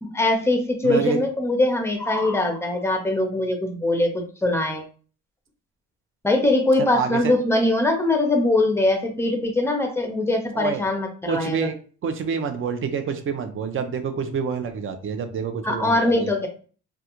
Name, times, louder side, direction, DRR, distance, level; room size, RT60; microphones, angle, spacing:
voice 1, 0.0-4.8 6.2-11.7 15.6-16.5, left 2 dB, 10° left, 4 dB, 0.6 m, -22 dB
voice 2, 0.8-1.2 6.8-7.4 10.5-10.8 11.3-11.8 12.0-16.3, right 6 dB, 45° right, 8 dB, 0.5 m, -27 dB
2.4 x 2.3 x 2.9 m, 0.41 s
cardioid pair, 90°, 30 cm